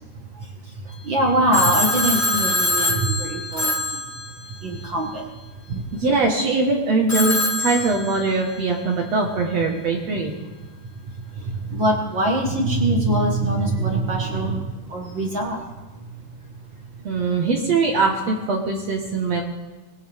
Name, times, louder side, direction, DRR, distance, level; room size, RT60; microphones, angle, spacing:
voice 1, 1.0-3.7 4.6-5.2 5.7-5.8 11.7-14.6 14.9-15.6, right 1 dB, 45° right, -1 dB, 2.1 m, -22 dB
Telephone, 1.5-4.8 7.1-8.6, left 1 dB, 15° left, 0.6 m, -24 dB
voice 2, 5.9-10.3 17.0-19.4, right 3 dB, 60° right, 0 dB, 2.6 m, -22 dB
20.5 x 19.5 x 3.6 m, 1.2 s
omnidirectional pair, 3.5 m